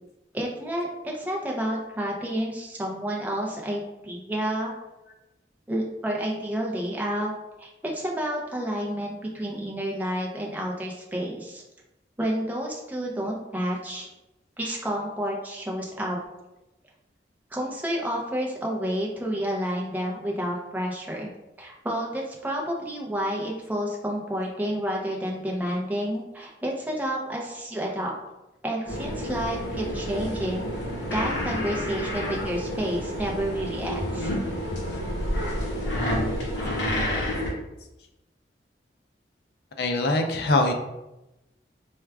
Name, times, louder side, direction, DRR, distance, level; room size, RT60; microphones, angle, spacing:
voice 1, 0.3-4.7 5.7-7.3 7.6-11.6 12.2-14.1 14.6-16.2 17.5-21.3 21.6-28.1 28.6-30.7 31.1-34.3, equal, 10° right, -2 dB, 0.5 m, -30 dB
sound 1, 28.9-37.5, equal, 85° left, 0.9 m, -29 dB
voice 2, 39.8-40.7, left 2 dB, 60° left, 4 dB, 0.4 m, -22 dB
4.4 x 2.3 x 2.2 m, 0.96 s
head